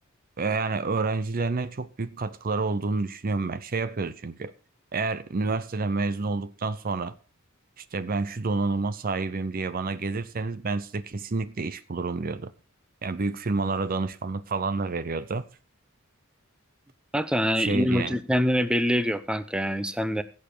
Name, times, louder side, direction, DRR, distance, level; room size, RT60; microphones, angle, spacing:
voice 1, 0.4-4.5 4.9-7.2 7.8-12.5 13.0-15.4 17.6-18.2, right 3 dB, 45° right, 0.6 m, -29 dB
voice 2, 17.1-20.2, equal, 5° right, 0.7 m, -25 dB
16.5 x 7.1 x 4.4 m
head